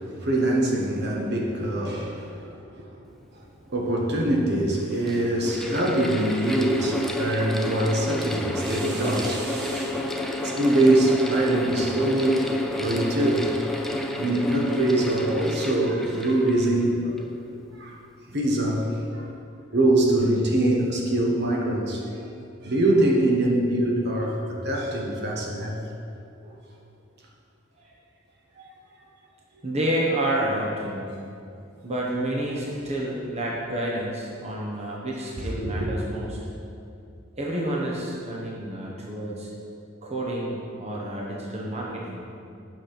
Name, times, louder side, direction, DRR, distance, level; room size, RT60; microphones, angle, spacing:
voice 1, 0.2-2.3 3.7-10.0 10.4-13.5 14.2-17.1 17.8-17.9 18.3-19.2 19.7-22.0 22.6-25.8 26.4-26.5 35.5-35.9, right 1 dB, 55° right, -1 dB, 1.2 m, -23 dB
Mechanical fan, 3.8-3.9 4.7-17.4, left 1 dB, ahead, 0.5 m, -31 dB
voice 2, 29.6-31.1 31.8-36.4 37.4-39.5 40.0-42.2, right 1 dB, 30° right, -4 dB, 1.0 m, -29 dB
9.3 x 5.9 x 5.1 m, 2.5 s
head